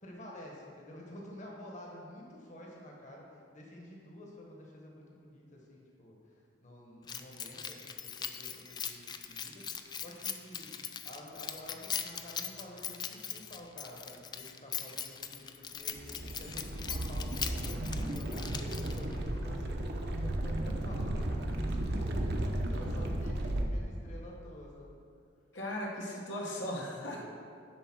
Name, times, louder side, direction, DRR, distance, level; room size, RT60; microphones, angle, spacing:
voice 1, 0.0-10.7 11.0-25.0 27.2-27.3, left 1 dB, 40° left, -2 dB, 1.4 m, -50 dB
Keys jangling, 7.1-19.2, left 7 dB, 25° left, 0.4 m, -41 dB
sound 1, 15.9-23.6, right 1 dB, 60° right, 0.8 m, -34 dB
voice 2, 25.5-27.2, left 1 dB, 75° left, -3 dB, 1.3 m, -37 dB
10.5 x 4.1 x 6.1 m, 2.3 s
head